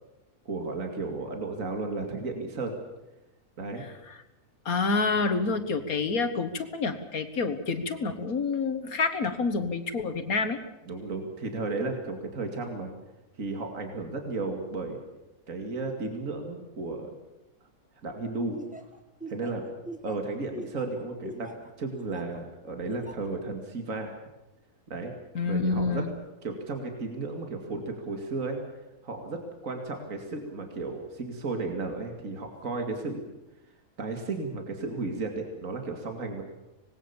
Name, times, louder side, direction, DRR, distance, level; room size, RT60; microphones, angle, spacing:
voice 1, 0.5-2.8 3.6-3.8 10.9-12.9 13.4-15.0 15.5-17.2 18.0-18.6 19.3-19.7 20.0-21.5 21.8-24.1 24.9-25.1 25.4-26.1 26.4-28.6 29.0-33.2 34.0-36.4, right 3 dB, 55° right, 3 dB, 2.6 m, -34 dB
voice 2, 3.8-4.2 4.7-10.6 25.3-26.1, left 4 dB, 65° left, 9 dB, 1.9 m, -28 dB
Laughter, 18.5-22.4 22.9-23.3, equal, 5° right, 1.6 m, -42 dB
25.5 x 20.0 x 7.1 m, 0.98 s
omnidirectional pair, 1.7 m